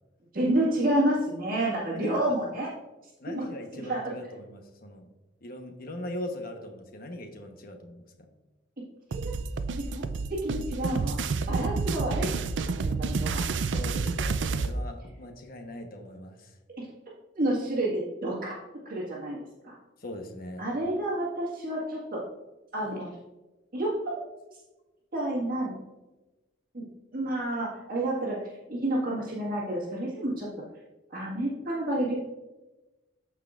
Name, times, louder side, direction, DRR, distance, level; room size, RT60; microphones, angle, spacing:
voice 1, 0.3-2.7 3.3-3.4 3.7-4.1 9.1-9.3 9.7-10.1 10.4-11.2 11.5-12.3 12.7-13.4 16.8-16.9 17.3-18.5 18.9-19.4 19.6-19.8 20.6-22.2 22.7-23.2 23.7-24.0 25.1-25.8 26.7-26.8 27.1-30.5 31.1-32.1, right 1 dB, 50° right, -5 dB, 1.7 m, -29 dB
voice 2, 1.9-2.3 3.2-5.1 5.4-8.3 13.7-16.6 20.0-20.7, left 1 dB, 55° left, 4 dB, 1.1 m, -40 dB
sound 1, 9.1-14.7, right 4 dB, 75° right, 0.4 m, -29 dB
14.0 x 4.7 x 2.5 m, 1.1 s
head